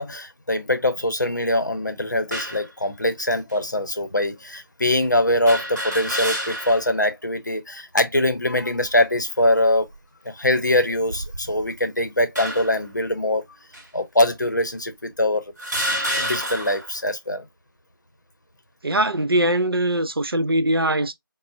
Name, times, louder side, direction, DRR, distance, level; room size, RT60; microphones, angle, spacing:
voice 1, 0.0-9.9 10.2-13.4 13.9-15.5 16.2-17.5, left 1 dB, 50° left, 0.7 m, -23 dB
sound 1, 2.3-2.7 3.5-3.6 5.5-6.9 7.3-7.4 8.6-9.0 9.7-10.0 10.9-11.7 12.4-12.9 13.7-13.9 14.7-14.8 15.6-16.9, equal, 50° right, 0.8 m, -29 dB
voice 2, 18.8-21.1, right 1 dB, 80° right, 0.5 m, -21 dB
4.3 x 2.0 x 2.5 m
figure-of-eight pair, 175°, 12 cm